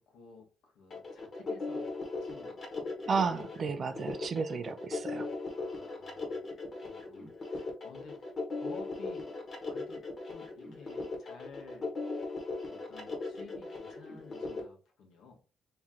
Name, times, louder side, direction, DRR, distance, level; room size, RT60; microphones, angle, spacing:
voice 1, 0.0-2.9 5.5-6.4 6.8-8.3 8.6-9.2 9.7-11.9 12.7-15.4, left 4 dB, 80° left, 1.3 m, -53 dB
sound 1, 0.9-14.6, left 3 dB, 35° left, 1.3 m, -38 dB
voice 2, 3.1-5.3, right 5 dB, 45° right, 0.5 m, -32 dB
3.0 x 2.9 x 3.7 m
cardioid pair, 115°, 0 cm